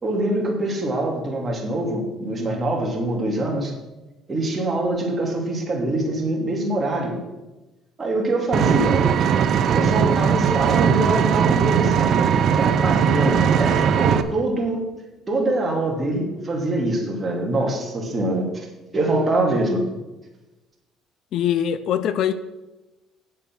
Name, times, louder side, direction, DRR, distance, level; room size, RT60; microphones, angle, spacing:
voice 1, 0.0-3.7 4.3-7.2 8.0-9.0 9.7-12.2 12.6-14.8 15.3-18.7 18.9-19.8, right 2 dB, 25° right, 2.6 m, -24 dB
Vehicle, 8.5-14.2, right 7 dB, 55° right, 0.7 m, -19 dB
voice 2, 21.3-22.3, left 9 dB, 65° left, 0.6 m, -22 dB
8.9 x 7.4 x 6.1 m
cardioid pair, 110°, 0 cm